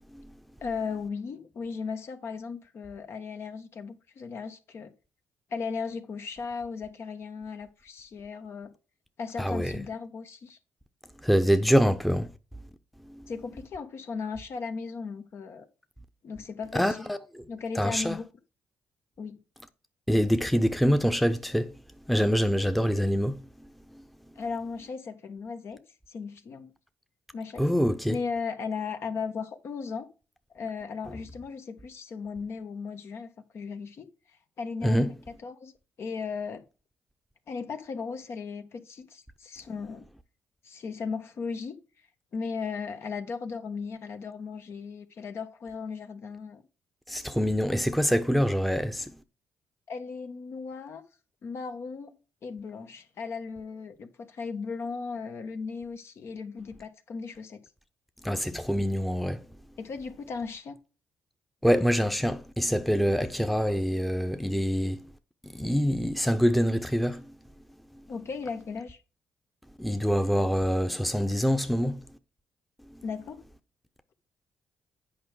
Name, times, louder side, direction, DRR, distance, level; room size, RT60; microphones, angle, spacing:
voice 1, 0.6-4.9 5.5-8.7 9.2-10.6 13.3-15.7 16.2-17.1 17.5-18.3 19.2-19.4 24.3-25.8 26.1-26.7 27.3-27.6 28.1-30.1 30.5-34.1 34.6-35.7 36.0-36.6 37.5-40.1 40.6-41.8 42.3-46.6 49.9-51.0 51.4-57.7 59.8-60.8 68.1-69.0 73.0-73.4, left 5 dB, 60° left, 1.3 m, -36 dB
voice 2, 9.4-9.8 11.2-12.3 13.1-13.3 16.7-17.2 17.8-18.2 20.1-21.7 22.1-23.4 27.6-28.2 34.8-35.1 47.1-49.1 58.2-59.5 61.6-65.1 65.4-67.3 69.8-72.0 72.9-73.0, equal, ahead, 0.8 m, -25 dB
8.7 x 5.2 x 4.7 m
supercardioid pair, 65°, 5 cm